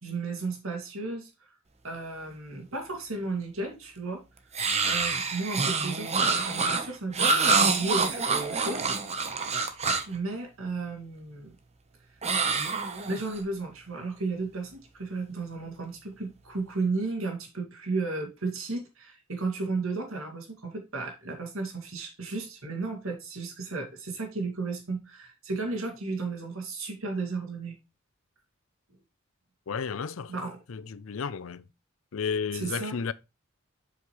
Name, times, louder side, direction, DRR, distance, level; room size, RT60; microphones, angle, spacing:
voice 1, 0.0-1.5 1.8-4.2 4.8-9.0 10.1-11.5 13.1-27.8 30.3-30.6 32.5-33.0, right 3 dB, 85° right, 2.5 m, -34 dB
sound 1, 4.5-10.2 12.2-13.4, right 4 dB, 30° right, 1.0 m, -26 dB
voice 2, 29.7-30.3 30.7-31.7 32.1-33.1, left 6 dB, 75° left, 0.5 m, -32 dB
7.7 x 5.6 x 3.2 m
head